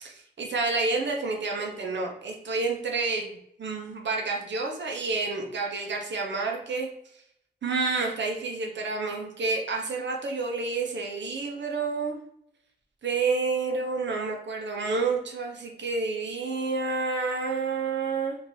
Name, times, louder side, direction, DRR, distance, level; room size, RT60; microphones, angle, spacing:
voice 1, 0.0-6.9 7.6-12.2 13.0-18.4, right 4 dB, 90° right, 1 dB, 0.9 m, -29 dB
4.1 x 2.8 x 3.2 m, 0.73 s
wide cardioid pair, 155°, 18 cm